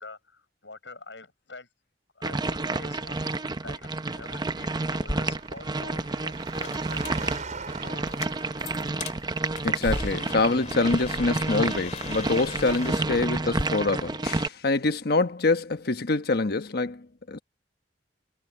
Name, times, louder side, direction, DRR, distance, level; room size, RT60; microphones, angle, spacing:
voice 1, 0.0-1.7 2.1-8.1, left 3 dB, 90° left, 6.6 m, -46 dB
sound 1, 2.2-14.5, right 3 dB, 25° right, 0.7 m, -30 dB
Engine, 3.8-9.3, right 4 dB, 45° right, 5.5 m, -42 dB
sound 2, 5.0-13.7, left 2 dB, 40° left, 2.4 m, -38 dB
voice 2, 9.6-17.4, left 3 dB, 60° left, 1.3 m, -25 dB
head